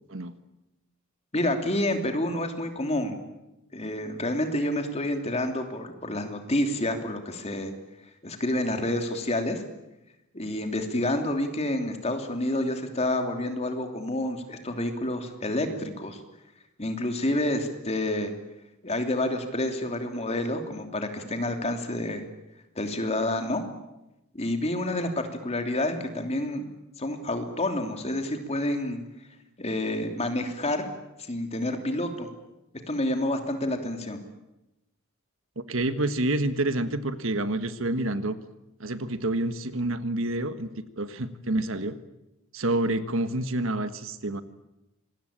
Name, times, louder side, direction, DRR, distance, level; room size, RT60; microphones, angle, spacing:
voice 1, 1.3-3.2 3.7-7.7 8.2-9.6 10.3-16.2 16.8-18.3 18.8-22.2 22.7-23.6 24.3-26.7 27.0-29.0 29.6-30.9 31.3-32.3 32.9-34.2, left 1 dB, 30° left, 5 dB, 3.0 m, -28 dB
voice 2, 35.5-38.4 38.8-40.7 41.0-42.0 42.5-44.4, right 1 dB, 65° right, 11 dB, 1.5 m, -28 dB
26.0 x 20.5 x 8.9 m, 0.93 s
head